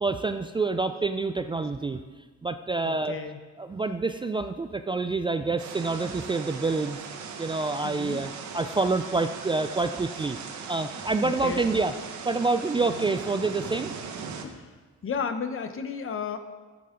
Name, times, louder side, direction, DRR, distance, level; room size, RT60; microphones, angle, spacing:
voice 1, 0.0-2.0 2.4-3.2 3.6-7.0 7.4-10.4 10.7-11.9 12.2-13.9, right 3 dB, 15° right, 8 dB, 0.3 m, -27 dB
voice 2, 2.8-3.4 7.8-8.2 11.2-11.7 14.4-14.7 15.0-16.4, left 6 dB, 45° left, 9 dB, 0.9 m, -33 dB
sound 1, 5.6-14.4, right 6 dB, 70° right, 1.2 m, -39 dB
11.0 x 7.7 x 3.8 m, 1.3 s
cardioid pair, 90°, 30 cm